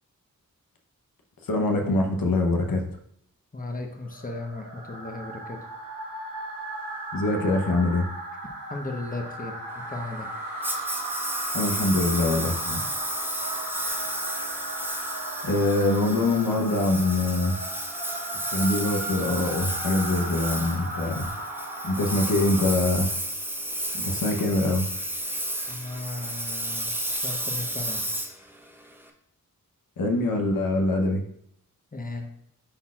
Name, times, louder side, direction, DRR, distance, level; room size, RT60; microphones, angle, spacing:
voice 1, 1.4-3.0 7.1-8.1 11.5-12.8 15.4-17.6 18.5-21.3 21.8-23.1 23.9-24.9 30.0-31.2, left 2 dB, 80° left, 2 dB, 1.0 m, -24 dB
voice 2, 3.5-5.6 8.7-9.6 9.9-10.3 25.7-26.9 27.2-28.0 31.9-32.3, left 2 dB, 25° left, 3 dB, 1.1 m, -35 dB
sound 1, 4.1-23.0, right 1 dB, 70° right, 1.7 m, -36 dB
Engine, 10.6-29.1, right 1 dB, 5° right, 0.9 m, -32 dB
10.0 x 4.1 x 2.4 m, 0.71 s
cardioid pair, 60°, 34 cm